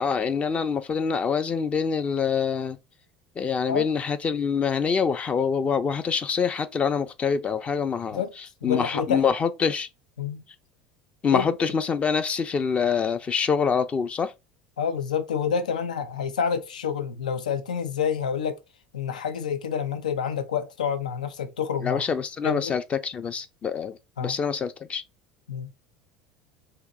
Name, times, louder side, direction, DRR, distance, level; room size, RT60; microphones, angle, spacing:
voice 1, 0.0-2.8 3.4-8.2 8.6-9.9 11.2-14.3 21.8-25.0, left 6 dB, 30° left, 0.5 m, -25 dB
voice 2, 8.6-9.2 10.2-10.4 11.3-11.5 14.8-18.6 18.9-22.0 22.4-22.7 24.2-24.4 25.5-25.7, left 7 dB, 85° left, 0.4 m, -28 dB
2.9 x 2.7 x 3.6 m
hypercardioid pair, 75°, 4 cm